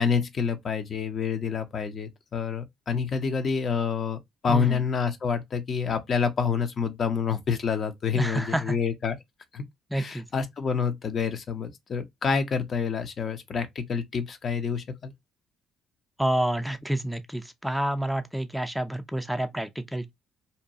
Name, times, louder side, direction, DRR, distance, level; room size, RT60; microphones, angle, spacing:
voice 1, 0.0-9.2 9.5-9.6 9.9-15.1, left 6 dB, 45° left, 0.5 m, -28 dB
voice 2, 4.5-4.8 8.1-8.8 9.9-10.3 16.2-20.1, right 1 dB, 5° right, 0.4 m, -28 dB
2.7 x 2.2 x 2.6 m
hypercardioid pair, 50°, 0 cm